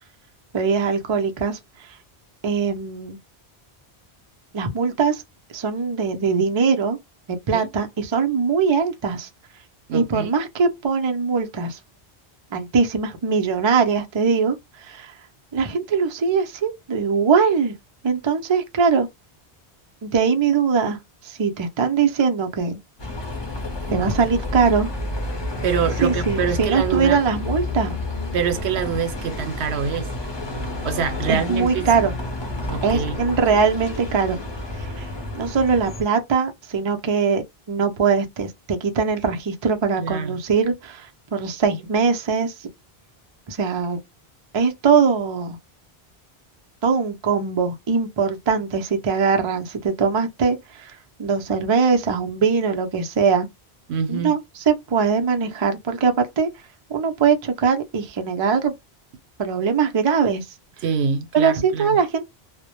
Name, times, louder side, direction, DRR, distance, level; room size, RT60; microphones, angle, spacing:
voice 1, 0.5-1.6 2.4-3.2 4.5-5.2 5.5-7.0 7.3-9.3 9.9-11.8 12.5-15.1 15.5-17.7 18.0-19.1 20.0-21.0 21.2-22.8 23.9-24.9 26.0-28.0 31.3-32.1 32.8-34.4 34.8-35.1 35.4-37.4 37.7-42.7 43.5-44.0 44.5-45.6 46.8-53.5 54.1-56.5 56.9-58.7 59.4-60.5 61.3-62.2, right 5 dB, 45° right, 0.3 m, -21 dB
voice 2, 9.9-10.3 25.6-27.2 28.3-30.1 30.8-32.0 32.7-33.2 40.0-40.4 53.9-54.4 60.8-62.0, right 7 dB, 85° right, 0.8 m, -25 dB
Bus, 23.0-36.0, left 2 dB, 30° left, 0.6 m, -30 dB
2.1 x 2.0 x 2.9 m
omnidirectional pair, 1.1 m